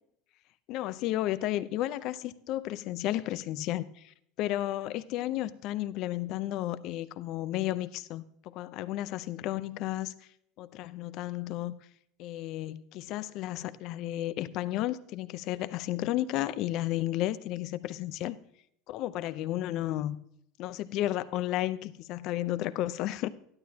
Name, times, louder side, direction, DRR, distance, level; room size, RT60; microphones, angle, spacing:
voice 1, 0.7-10.1 10.6-11.7 12.2-18.4 18.9-20.2 20.6-23.3, left 14 dB, 55° left, 0.7 m, -33 dB
12.5 x 11.5 x 2.9 m
supercardioid pair, 120°, 0 cm